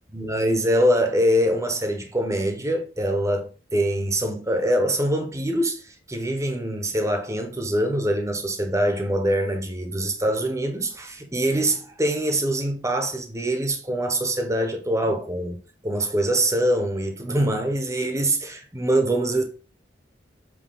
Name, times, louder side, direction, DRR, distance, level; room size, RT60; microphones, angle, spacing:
voice 1, 0.1-15.6 15.8-19.4, right 1 dB, 15° right, 1.0 m, -24 dB
7.7 x 3.1 x 5.5 m
head